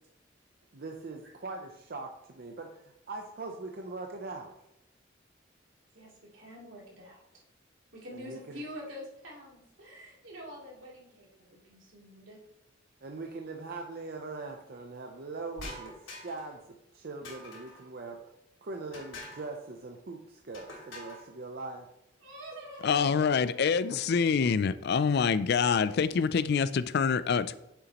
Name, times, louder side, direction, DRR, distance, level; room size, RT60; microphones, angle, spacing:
voice 1, 0.7-4.5 8.1-8.6 13.0-15.9 16.2-16.6 16.9-18.2 18.6-21.9 23.9-24.0 24.4-24.7, right 3 dB, 55° right, 3 dB, 0.7 m, -41 dB
voice 2, 5.9-7.2 7.9-11.3 11.5-12.4 22.2-24.2, equal, 85° right, -4 dB, 3.0 m, -46 dB
sound 1, 15.6-16.5 17.2-17.9 18.9-19.5 20.5-21.3, left 1 dB, 80° left, 2.8 m, -45 dB
voice 3, 22.8-27.6, left 6 dB, 60° left, 14 dB, 0.4 m, -26 dB
8.9 x 7.0 x 3.0 m, 0.83 s
head